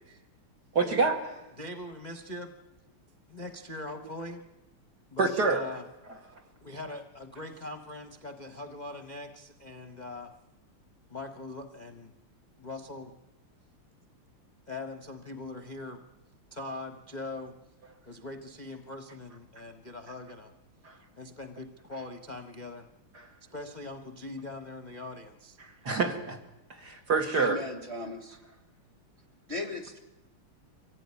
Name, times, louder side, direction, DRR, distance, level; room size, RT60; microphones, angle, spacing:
voice 1, 0.7-1.2 5.2-5.6 20.8-20.9 23.1-23.3 25.6-26.4 26.7-27.6, right 4 dB, 50° right, 3 dB, 2.5 m, -27 dB
voice 2, 1.6-2.6 3.3-4.4 5.1-5.9 6.6-10.3 11.1-12.1 12.6-13.1 14.7-16.0 16.5-17.5 18.0-20.5 21.2-22.9 23.5-25.6, left 2 dB, 25° left, 5 dB, 1.1 m, -41 dB
voice 3, 27.4-28.4 29.5-30.0, left 2 dB, 30° right, 5 dB, 2.8 m, -37 dB
25.0 x 16.0 x 9.8 m, 0.98 s
omnidirectional pair, 2.4 m